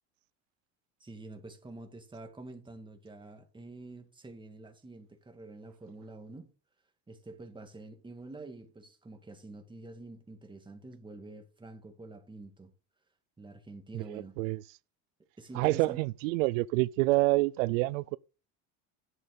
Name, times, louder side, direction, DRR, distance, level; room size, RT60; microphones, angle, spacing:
voice 1, 1.0-6.5 7.1-12.7 13.4-14.3 15.4-16.0, right 2 dB, 10° right, 2.0 m, -47 dB
voice 2, 13.9-14.6 15.5-18.2, right 21 dB, 90° right, 0.5 m, -27 dB
10.5 x 7.8 x 3.9 m
supercardioid pair, 115°, 38 cm